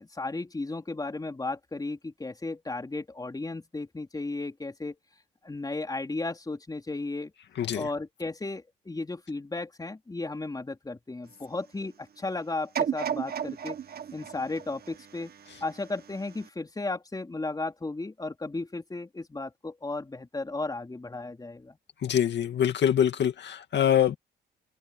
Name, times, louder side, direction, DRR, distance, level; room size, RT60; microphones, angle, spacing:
voice 1, 0.0-4.9 5.4-7.3 7.7-13.8 14.1-15.3 15.6-21.8, left 2 dB, 20° left, 4.1 m, -34 dB
sound 1, 12.7-15.8 16.4-16.5, right 8 dB, 50° right, 1.8 m, -33 dB
voice 2, 22.0-24.2, left 9 dB, 60° left, 2.1 m, -24 dB
cardioid pair, 90°, 20 cm